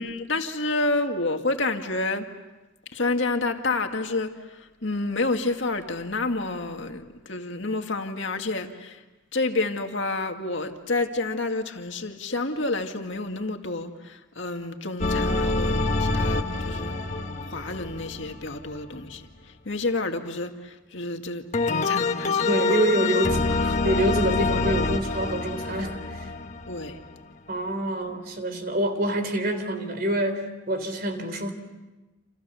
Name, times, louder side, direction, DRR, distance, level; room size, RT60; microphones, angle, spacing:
voice 1, 0.0-2.3 2.9-9.0 9.3-16.9 17.5-19.2 19.7-22.8 26.7-27.0, left 2 dB, 65° left, 2.1 m, -29 dB
sound 1, 15.0-19.1 21.5-27.2, left 3 dB, 35° left, 1.5 m, -26 dB
voice 2, 22.5-26.3 27.5-31.5, right 1 dB, 45° right, 3.5 m, -26 dB
29.5 x 28.0 x 7.1 m
head